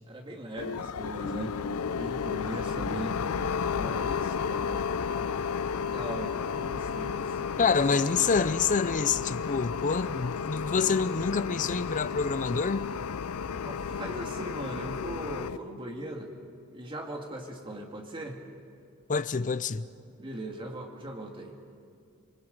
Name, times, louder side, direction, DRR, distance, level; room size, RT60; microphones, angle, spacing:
voice 1, 0.1-1.5 1.9-3.1 3.7-4.9 5.2-5.5 5.9-7.4 13.5-16.3 16.7-18.4 20.2-21.5, right 1 dB, 25° right, 2.1 m, -39 dB
sound 1, 0.6-15.6, left 6 dB, 85° left, 0.5 m, -32 dB
voice 2, 7.6-12.9 19.1-19.9, left 5 dB, 35° left, 0.6 m, -27 dB
27.0 x 23.5 x 5.3 m
head